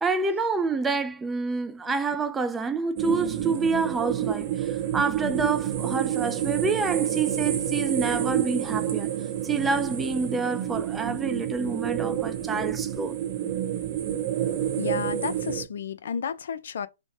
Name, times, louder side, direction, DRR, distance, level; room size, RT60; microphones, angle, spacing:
voice 1, 0.0-9.1 9.4-13.2, right 4 dB, 10° right, 0.3 m, -28 dB
sound 1, 3.0-15.6, right 11 dB, 40° right, 0.7 m, -28 dB
voice 2, 14.8-16.9, left 6 dB, 70° left, 0.4 m, -31 dB
2.6 x 2.1 x 3.1 m
hypercardioid pair, 130°, 0 cm